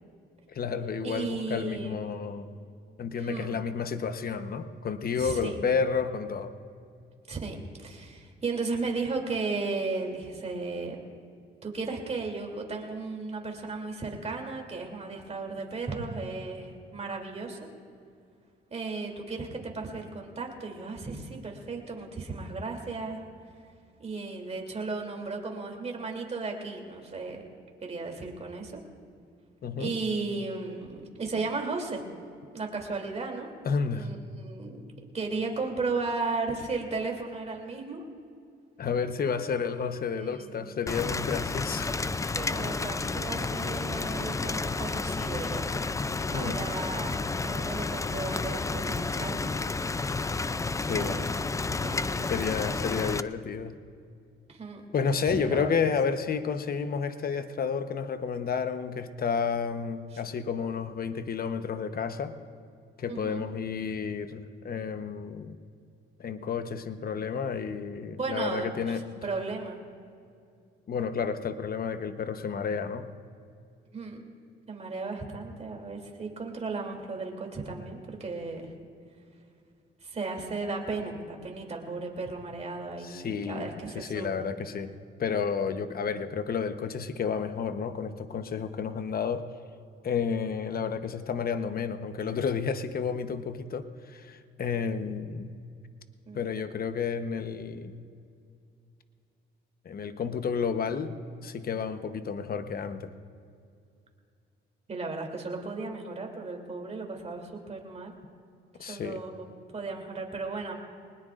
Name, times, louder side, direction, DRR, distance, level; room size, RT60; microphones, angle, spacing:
voice 1, 0.5-2.5 3.0-6.5 29.6-29.9 33.6-34.1 38.8-41.9 46.3-46.6 50.7-51.2 52.2-53.8 54.9-62.3 63.0-65.6 66.2-69.0 70.9-73.1 83.0-83.7 83.9-84.9 85.2-89.4 90.0-95.5 96.3-98.0 99.8-101.1 101.4-103.1 108.8-109.2, left 6 dB, 50° left, 9 dB, 1.0 m, -31 dB
voice 2, 1.0-2.0 3.1-3.5 5.2-5.6 7.3-11.0 11.6-17.6 18.7-23.2 24.0-27.4 27.8-28.8 29.8-32.0 32.5-33.5 33.9-38.0 40.1-40.9 42.4-45.7 46.3-49.5 50.9-51.3 51.8-52.3 54.5-54.8 55.3-55.8 60.1-60.2 63.1-63.4 68.2-69.8 73.9-74.2 74.7-78.7 80.0-84.4 96.2-96.5 104.9-108.1 108.8-110.7, right 3 dB, 35° right, 1 dB, 3.0 m, -35 dB
Rain, 40.9-53.2, left 3 dB, 15° left, 0.4 m, -31 dB
22.5 x 20.0 x 2.5 m, 2.4 s
cardioid pair, 90°, 20 cm